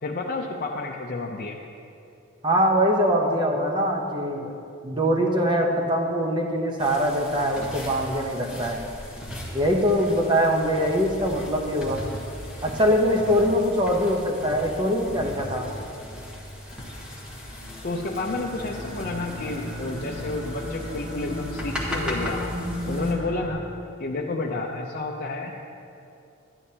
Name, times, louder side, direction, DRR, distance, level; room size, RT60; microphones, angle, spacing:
voice 1, 0.0-1.6 17.8-22.5 22.9-23.7 24.0-25.7, left 2 dB, 40° left, -1 dB, 0.5 m, -30 dB
voice 2, 2.4-4.5 4.8-8.8 9.5-12.0 12.6-15.7, equal, 20° right, 1 dB, 0.8 m, -23 dB
sound 1, 6.8-23.1, left 1 dB, 5° right, 1.2 m, -38 dB
sound 2, 16.7-23.5, equal, 70° right, 2.0 m, -35 dB
12.0 x 10.5 x 2.8 m, 2.6 s
head